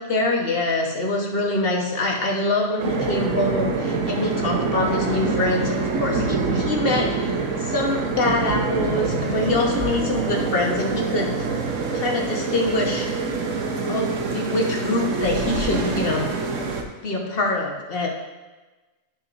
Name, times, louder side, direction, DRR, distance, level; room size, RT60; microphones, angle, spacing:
voice 1, 0.1-11.5 11.9-13.1 13.9-16.3 17.0-18.1, left 2 dB, 45° left, 0 dB, 1.3 m, -24 dB
sound 1, 2.8-16.8, right 4 dB, 65° right, 1.2 m, -25 dB
12.5 x 6.1 x 2.6 m, 1.2 s
omnidirectional pair, 1.4 m